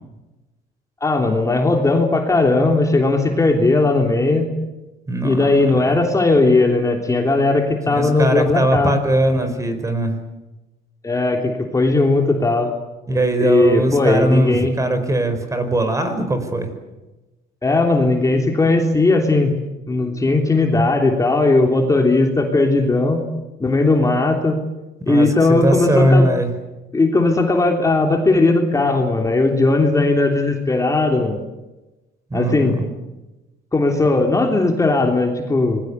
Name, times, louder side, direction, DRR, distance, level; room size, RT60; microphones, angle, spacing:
voice 1, 1.0-4.5 5.2-8.9 11.0-12.7 13.4-14.7 17.6-19.6 19.9-23.2 23.6-24.6 25.1-26.3 26.9-31.4 32.3-32.8 33.7-35.8, left 2 dB, 20° left, 2 dB, 3.4 m, -17 dB
voice 2, 5.1-5.9 7.9-10.2 13.1-16.7 25.1-26.5 32.3-32.9, right 1 dB, 20° right, 8 dB, 4.8 m, -20 dB
26.5 x 21.0 x 8.2 m, 1.1 s
cardioid pair, 110°, 17 cm